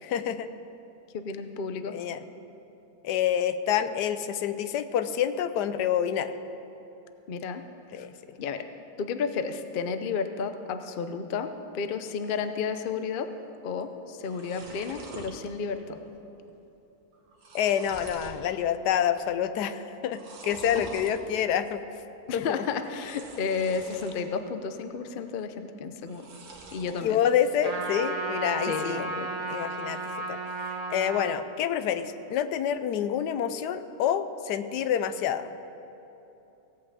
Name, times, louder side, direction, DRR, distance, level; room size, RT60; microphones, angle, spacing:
voice 1, 0.0-0.5 1.9-2.2 3.0-6.3 7.9-8.1 17.5-21.8 22.3-22.6 27.0-29.0 29.5-30.0 30.3-35.5, left 9 dB, 85° left, 11 dB, 1.2 m, -27 dB
voice 2, 1.1-2.0 7.3-7.6 8.0-8.1 8.4-8.7 9.0-13.3 13.6-16.0 20.8-20.9 22.3-26.3 26.7-27.2 28.6-29.3, left 5 dB, 55° left, 9 dB, 0.6 m, -32 dB
sound 1, 13.8-13.9 14.1-15.3 15.8-16.2 16.5-16.6 17.1-18.4 18.9-19.3 20.1-21.1 22.9-24.3 24.7-25.3 26.0-27.1, right 4 dB, 65° right, 1.7 m, -44 dB
Trumpet, 27.6-31.3, right 3 dB, 30° right, 0.9 m, -33 dB
16.5 x 5.6 x 8.1 m, 3.0 s
omnidirectional pair, 1.7 m